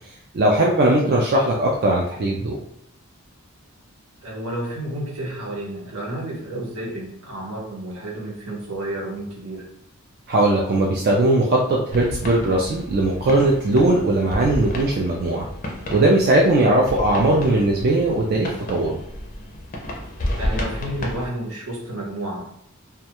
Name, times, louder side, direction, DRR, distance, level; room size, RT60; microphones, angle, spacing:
voice 1, 0.3-2.6 10.3-15.4 15.9-19.0, right 2 dB, 45° right, -2 dB, 0.3 m, -19 dB
voice 2, 4.2-9.6 16.7-16.8 20.4-22.4, right 1 dB, 75° right, -3 dB, 0.9 m, -31 dB
sound 1, 11.9-21.3, left 1 dB, 35° left, 0.4 m, -32 dB
2.3 x 2.2 x 2.8 m, 0.71 s
head